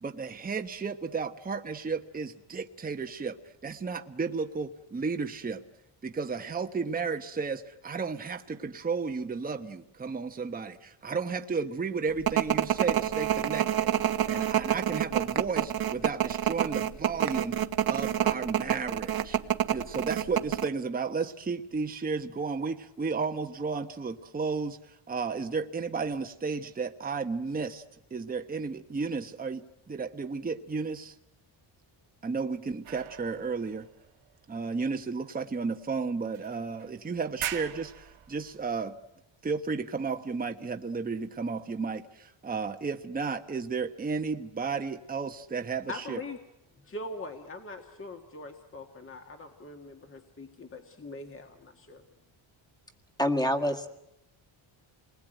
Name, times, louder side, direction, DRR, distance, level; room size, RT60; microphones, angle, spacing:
voice 1, 0.0-3.4 3.6-5.6 6.0-17.6 17.8-19.4 19.7-27.8 28.1-31.1 32.2-33.9 34.5-39.0 39.4-46.2, right 4 dB, 20° right, 6 dB, 1.0 m, -33 dB
sound 1, 12.3-20.7, right 11 dB, 45° right, 1.2 m, -27 dB
sound 2, 32.8-34.8 35.5-35.6 36.3-36.9 37.3-38.8, right 12 dB, 90° right, 2.1 m, -41 dB
voice 2, 45.9-46.4 46.8-52.0, left 2 dB, 25° left, 4 dB, 1.8 m, -42 dB
voice 3, 53.2-53.9, left 1 dB, 10° left, 8 dB, 1.9 m, -26 dB
29.0 x 20.5 x 9.1 m, 0.87 s
cardioid pair, 150°, 48 cm